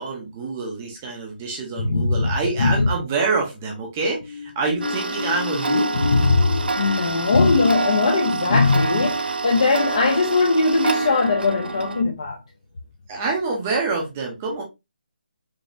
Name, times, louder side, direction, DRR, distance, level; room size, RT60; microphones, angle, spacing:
voice 1, 0.0-6.1 13.1-14.6, right 3 dB, 10° right, 0.6 m, -26 dB
voice 2, 1.8-2.9 5.9-12.4, left 3 dB, 35° left, 0.6 m, -20 dB
sound 1, 4.1-10.3 10.7-10.8, left 4 dB, 70° left, 1.0 m, -32 dB
Tick-tock, 4.8-12.0, right 4 dB, 75° right, 0.6 m, -27 dB
5.0 x 2.7 x 2.6 m
hypercardioid pair, 175°, 5 cm